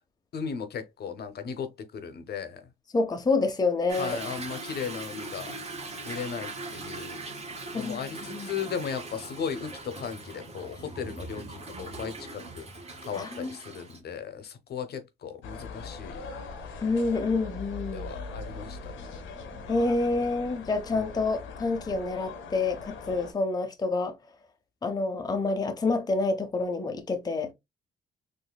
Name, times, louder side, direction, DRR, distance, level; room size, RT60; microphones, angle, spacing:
voice 1, 0.3-2.6 4.0-5.5 6.0-7.2 7.7-12.7 13.0-16.2 17.9-18.9, left 6 dB, 55° left, 0.8 m, -36 dB
voice 2, 2.9-4.2 7.7-8.0 8.3-8.5 13.2-13.6 16.8-18.1 19.7-24.2 24.8-27.5, left 3 dB, 20° left, 0.6 m, -28 dB
Toilet flush / Drip / Trickle dribble, 3.9-14.0, right 2 dB, 30° right, 1.5 m, -40 dB
sound 1, 15.4-23.3, left 4 dB, 80° left, 0.9 m, -41 dB
4.0 x 2.6 x 2.2 m
cardioid pair, 90°, 20 cm